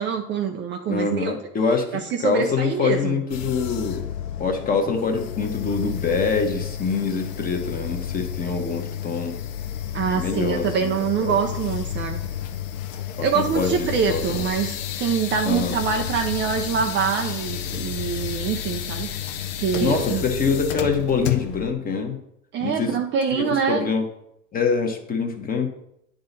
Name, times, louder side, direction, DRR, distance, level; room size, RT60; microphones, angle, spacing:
voice 1, 0.0-1.3 1.9-3.2 9.9-12.2 13.2-20.2 22.5-23.9, right 6 dB, 25° right, 4 dB, 0.5 m, -25 dB
voice 2, 0.9-4.0 4.4-9.4 10.1-10.9 11.2-11.4 13.2-14.5 15.4-15.8 19.8-22.2 22.6-23.0 23.3-24.0 24.5-25.7, left 5 dB, 20° left, 4 dB, 1.1 m, -25 dB
sound 1, 3.3-21.7, left 10 dB, 60° left, 0.8 m, -31 dB
9.5 x 3.9 x 3.9 m, 0.79 s
hypercardioid pair, 105°, 43 cm